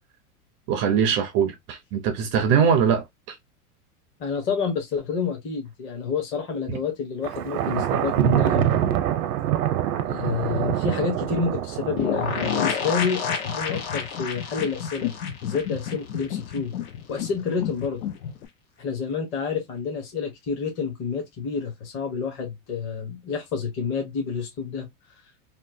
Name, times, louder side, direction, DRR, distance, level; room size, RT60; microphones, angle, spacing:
voice 1, 0.7-3.4, right 7 dB, 30° right, 0.4 m, -22 dB
voice 2, 4.2-8.9 10.0-15.1 15.4-16.7 17.1-18.0 18.8-24.9, left 5 dB, 30° left, 0.8 m, -29 dB
Thunder, 7.2-12.5, right 12 dB, 85° right, 0.6 m, -25 dB
sound 1, 12.0-18.5, left 9 dB, 85° left, 0.7 m, -34 dB
sound 2, 12.0-16.6 16.8-16.9 17.2-17.3, left 6 dB, 65° left, 1.1 m, -29 dB
2.9 x 2.2 x 2.5 m
supercardioid pair, 130°, 44 cm